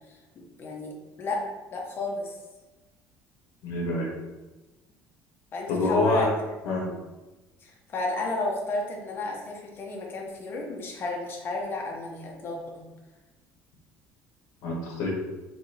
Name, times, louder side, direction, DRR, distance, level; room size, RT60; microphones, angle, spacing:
voice 1, 0.3-1.4 1.7-2.3 5.5-6.3 6.9-7.0 7.6-12.9, left 2 dB, 40° left, -1 dB, 1.1 m, -32 dB
voice 2, 3.6-4.1 5.7-6.3 6.6-6.8 14.6-15.1, left 2 dB, 75° left, -4 dB, 1.3 m, -26 dB
5.1 x 3.4 x 3.0 m, 1.1 s
cardioid pair, 125°, 6 cm